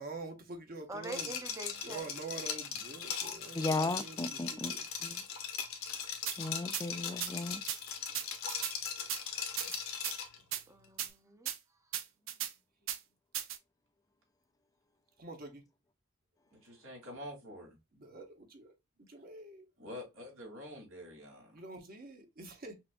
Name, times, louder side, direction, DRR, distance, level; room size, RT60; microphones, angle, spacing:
voice 1, 0.0-1.3 1.8-4.9 9.6-9.7 15.2-15.6 18.0-18.7 19.1-19.6 21.5-22.7, right 3 dB, 45° right, 1.0 m, -46 dB
voice 2, 0.9-2.1 10.7-11.5, right 2 dB, 15° right, 0.7 m, -44 dB
Liquid, 1.0-10.4, left 7 dB, 75° left, 1.1 m, -39 dB
voice 3, 3.5-4.7 5.0-5.2 6.4-7.6, left 3 dB, 15° left, 0.3 m, -35 dB
sound 1, 6.3-6.4 6.7-6.8 7.2-7.3 7.7-7.8 8.1-8.7 9.1-9.2 9.6-10.2 10.5-10.6 11.0-11.1 11.5-11.6 11.9-12.5 12.9-13.0 13.3-13.6, right 11 dB, 65° right, 0.5 m, -36 dB
voice 4, 16.5-17.8 19.8-21.5, left 1 dB, 85° right, 2.3 m, -47 dB
5.9 x 2.7 x 2.2 m
head